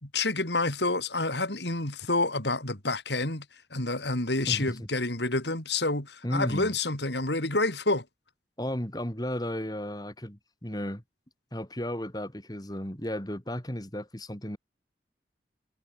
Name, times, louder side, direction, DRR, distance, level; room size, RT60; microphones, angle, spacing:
voice 1, 0.0-3.4 3.7-8.0, left 2 dB, 70° left, 4.6 m, -28 dB
voice 2, 4.5-4.9 6.2-6.7 8.6-11.0 11.5-14.6, equal, 20° left, 3.7 m, -34 dB
head